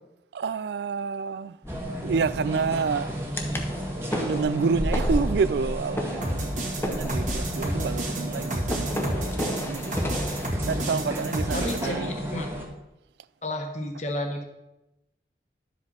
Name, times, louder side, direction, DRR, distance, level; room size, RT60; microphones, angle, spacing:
voice 1, 0.3-1.6 2.0-3.1 4.1-10.1 10.6-12.1, right 5 dB, 70° right, 0.3 m, -29 dB
sound 1, 1.6-10.5, equal, 15° left, 0.9 m, -35 dB
sound 2, 1.7-12.7, equal, 15° right, 1.5 m, -32 dB
sound 3, 6.2-11.8, right 1 dB, 45° right, 1.9 m, -31 dB
voice 2, 8.1-8.6 11.5-12.5 13.4-14.4, left 1 dB, 40° left, 1.3 m, -32 dB
12.0 x 7.4 x 4.2 m
head